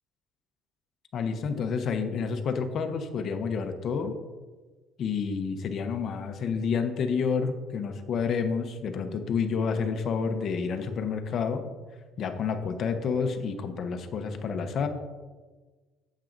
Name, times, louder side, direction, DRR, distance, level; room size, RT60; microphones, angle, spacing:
voice 1, 1.1-4.1 5.0-11.6 12.2-14.9, left 5 dB, 50° left, 7 dB, 0.8 m, -29 dB
8.8 x 7.5 x 2.6 m, 1.3 s
cardioid pair, 130°, 0 cm